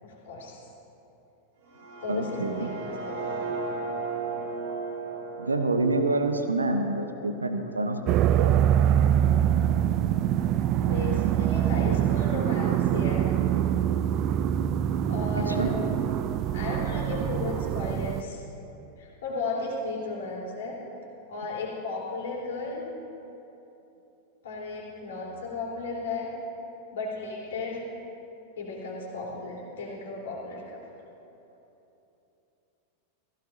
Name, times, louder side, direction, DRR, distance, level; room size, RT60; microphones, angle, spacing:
voice 1, 0.0-0.6 2.0-3.5 10.8-13.3 15.1-16.1 16.5-18.4 19.0-20.8 21.3-22.9 24.4-26.3 26.9-27.8 28.6-30.8, left 3 dB, 60° left, -5 dB, 3.3 m, -35 dB
sound 1, 1.6-7.6, right 4 dB, 55° right, 1.6 m, -36 dB
voice 2, 2.1-2.7 5.4-8.6 15.5-15.7, right 2 dB, 80° right, 6 dB, 0.8 m, -27 dB
sound 2, 8.1-18.2, right 10 dB, 35° right, 0.4 m, -24 dB
16.0 x 15.5 x 2.7 m, 3.0 s
figure-of-eight pair, 90°, 0 cm